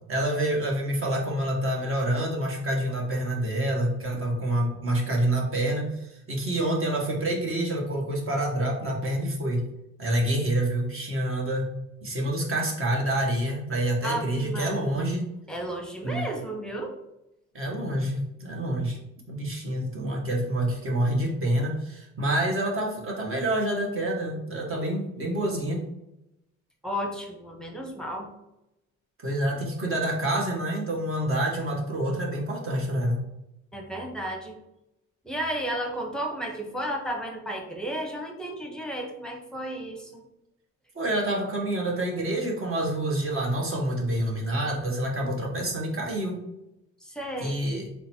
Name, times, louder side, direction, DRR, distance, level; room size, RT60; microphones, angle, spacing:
voice 1, 0.1-9.6 10.0-11.7 12.0-15.3 16.0-16.3 17.5-19.0 19.3-25.8 29.2-33.2 40.9-46.4 47.4-47.9, right 1 dB, 45° right, -1 dB, 1.2 m, -27 dB
voice 2, 14.0-15.0 15.5-17.0 26.8-28.3 33.7-34.5 35.2-40.2 47.0-47.6, right 1 dB, ahead, 2 dB, 0.9 m, -33 dB
3.8 x 2.1 x 4.3 m, 0.88 s
cardioid pair, 90°, 30 cm